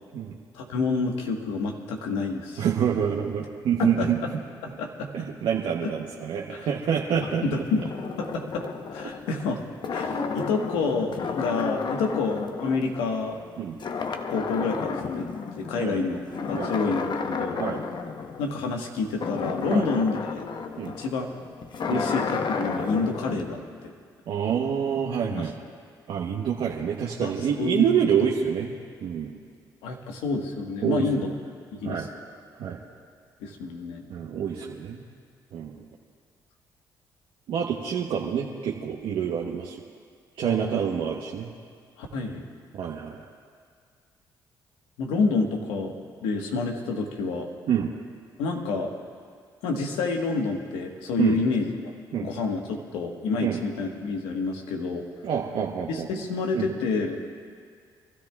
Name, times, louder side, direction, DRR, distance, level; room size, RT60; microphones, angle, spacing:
voice 1, 0.5-2.6 3.8-4.3 4.6-5.1 5.8-5.9 6.5-6.7 7.2-7.9 8.2-9.6 9.9-13.4 14.3-15.3 15.6-17.6 18.4-20.5 21.0-21.3 21.9-23.6 25.3-25.5 27.2-27.9 29.8-31.3 31.7-32.1 33.4-34.0 40.4-40.9 42.0-42.5 45.0-46.0 46.2-47.5 48.4-48.9 49.6-51.9 52.2-55.1 55.9-57.2, left 4 dB, 90° left, 2 dB, 1.3 m, -28 dB
voice 2, 2.6-4.2 5.1-7.4 13.6-13.8 15.8-16.0 16.5-16.7 17.6-17.8 19.7-19.9 20.8-20.9 21.9-22.0 24.3-25.5 26.1-28.7 29.0-29.3 30.8-31.0 31.8-32.1 32.5-32.8 34.1-35.0 35.5-35.8 37.5-39.8 40.4-41.5 42.7-43.2 47.7-47.9 51.2-51.4 52.1-52.3 53.4-53.6 55.2-56.1 56.5-56.7, right 8 dB, 75° right, -2 dB, 1.0 m, -27 dB
sound 1, 7.1-13.5 13.8-15.9 16.3-23.4, left 5 dB, 55° left, 0.9 m, -32 dB
28.0 x 13.0 x 2.3 m, 2.1 s
supercardioid pair, 60°, 9 cm